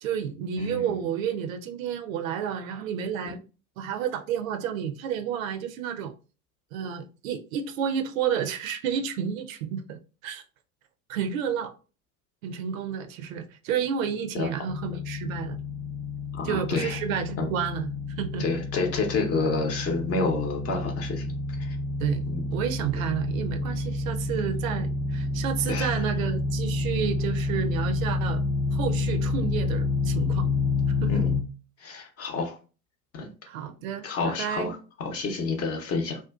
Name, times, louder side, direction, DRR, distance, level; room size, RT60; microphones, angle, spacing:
voice 1, 0.0-3.4 3.8-6.1 6.7-10.4 11.1-11.7 12.4-15.6 16.4-17.9 18.2-18.6 22.0-22.3 22.5-28.4 28.7-30.5 31.0-31.2 33.5-34.8, right 8 dB, 65° right, 0.5 m, -31 dB
sound 1, 14.7-31.4, left 3 dB, 15° left, 0.4 m, -29 dB
voice 2, 16.3-17.0 17.4-17.5 18.4-21.2 21.6-21.8 22.3-22.4 25.7-26.0 31.1-31.3 31.8-32.5 33.1-33.3 34.0-36.2, left 3 dB, 35° left, 0.8 m, -29 dB
2.5 x 2.2 x 2.3 m
figure-of-eight pair, 75°, 44 cm